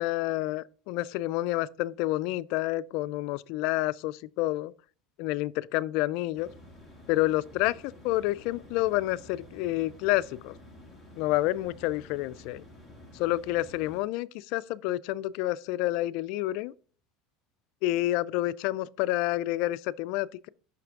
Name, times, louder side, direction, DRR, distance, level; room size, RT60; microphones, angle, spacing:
voice 1, 0.0-4.7 5.2-6.5 7.1-10.5 11.2-12.6 13.1-16.7 17.8-20.5, left 17 dB, 65° left, 0.3 m, -29 dB
sound 1, 6.3-14.0, left 1 dB, 5° right, 2.1 m, -51 dB
5.9 x 5.7 x 3.7 m
supercardioid pair, 125°, 0 cm